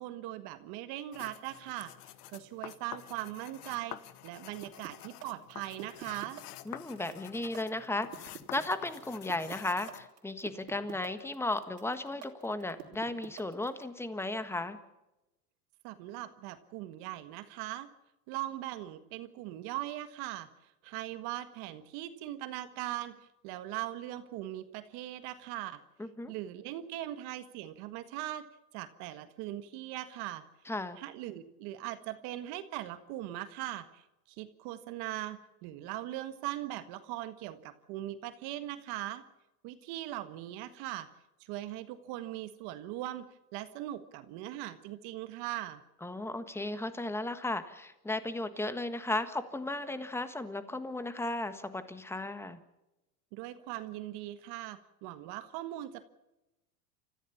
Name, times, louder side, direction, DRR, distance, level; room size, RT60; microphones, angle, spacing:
voice 1, 0.0-1.9 2.3-6.4 15.8-17.9 18.3-20.5 20.8-23.1 23.4-25.8 26.3-28.4 28.7-30.4 31.0-39.2 39.6-41.1 41.4-43.3 43.5-45.8 53.3-56.1, right 14 dB, 55° right, 10 dB, 1.7 m, -40 dB
sound 1, 1.1-10.1, left 14 dB, 85° left, 1.3 m, -49 dB
sound 2, 4.6-13.8, right 13 dB, 90° right, 3.6 m, -47 dB
voice 2, 6.6-14.8 26.0-26.3 30.6-31.0 46.0-52.6, left 2 dB, 5° left, 11 dB, 1.5 m, -35 dB
28.5 x 14.5 x 7.2 m, 0.96 s
supercardioid pair, 125°, 46 cm